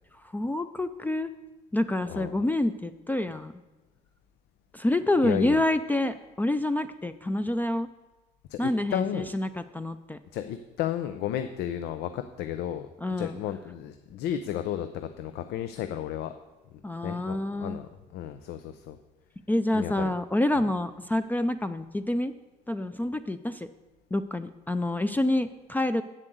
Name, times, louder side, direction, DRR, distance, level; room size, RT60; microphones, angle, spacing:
voice 1, 0.3-1.3 1.7-3.6 4.7-7.9 8.6-10.2 13.0-13.4 16.8-17.8 19.5-22.3 22.7-23.7 24.1-26.0, left 1 dB, 10° left, 10 dB, 0.4 m, -27 dB
voice 2, 2.1-2.4 5.2-5.6 8.5-9.3 10.3-12.9 13.2-16.3 17.0-19.0 19.7-20.2 20.6-20.7, left 10 dB, 80° left, 9 dB, 0.6 m, -33 dB
8.1 x 7.5 x 7.8 m, 1.1 s
cardioid pair, 110°, 17 cm